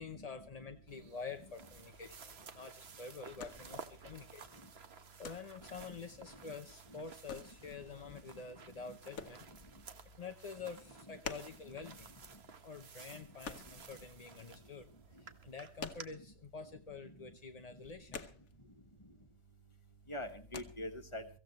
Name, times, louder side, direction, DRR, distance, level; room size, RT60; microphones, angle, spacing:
voice 1, 0.0-4.5 5.2-9.5 10.2-12.1 12.6-14.9 15.2-18.2, left 5 dB, 35° left, 6 dB, 0.6 m, -48 dB
sound 1, 0.9-16.1, right 5 dB, 45° right, 1.4 m, -55 dB
sound 2, 1.5-14.5 14.7-16.7 16.9-17.1 17.4-19.0 19.2-19.7 20.0-20.6, left 6 dB, 70° left, 1.6 m, -49 dB
voice 2, 7.6-8.2 8.7-9.0 11.0-11.2 11.6-12.0 13.5-13.6 16.1-16.2 17.0-17.3 18.1-18.2 20.1-21.3, left 1 dB, 20° left, 7 dB, 1.6 m, -47 dB
24.0 x 15.0 x 3.1 m, 0.36 s
omnidirectional pair, 1.5 m